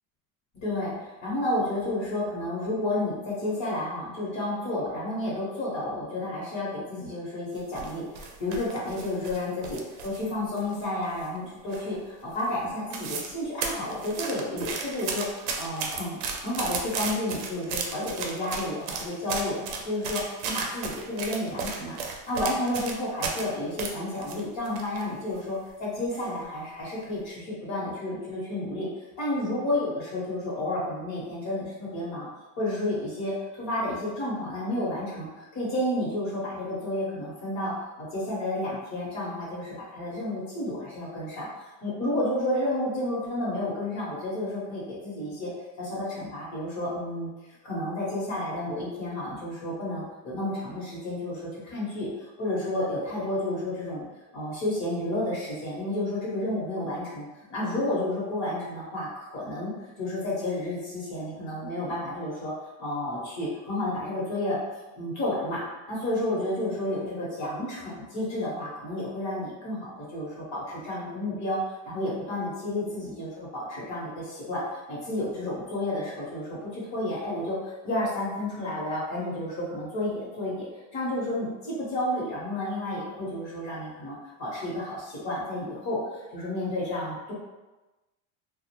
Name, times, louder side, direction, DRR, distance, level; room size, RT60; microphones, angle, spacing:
voice 1, 0.6-28.9 29.2-32.3 32.6-41.5 41.8-45.5 45.8-47.3 47.6-52.1 52.4-54.0 54.3-62.5 62.8-64.6 65.0-65.6 65.9-87.3, left 1 dB, 45° left, -6 dB, 0.9 m, -31 dB
sound 1, 7.6-10.3 10.6-11.4 11.7-12.1 12.4-12.5 12.7-13.3 13.6-23.5 23.8-25.0 25.4-25.5 26.1-26.4 26.8-27.0, right 5 dB, 85° right, 0.6 m, -34 dB
2.4 x 2.0 x 2.8 m, 1.1 s
cardioid pair, 150°, 40 cm